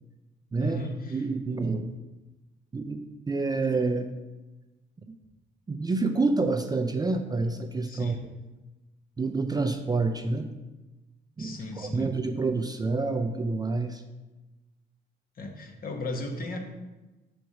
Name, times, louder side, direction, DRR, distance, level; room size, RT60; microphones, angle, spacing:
voice 1, 0.6-1.2 7.9-8.2 11.4-12.1 15.4-16.6, left 1 dB, 45° left, 3 dB, 1.0 m, -35 dB
voice 2, 1.1-1.9 2.7-4.1 5.7-8.2 9.2-10.5 11.4-14.0, right 3 dB, 20° right, 6 dB, 0.4 m, -28 dB
5.3 x 4.6 x 4.8 m, 1.1 s
cardioid pair, 90°, 20 cm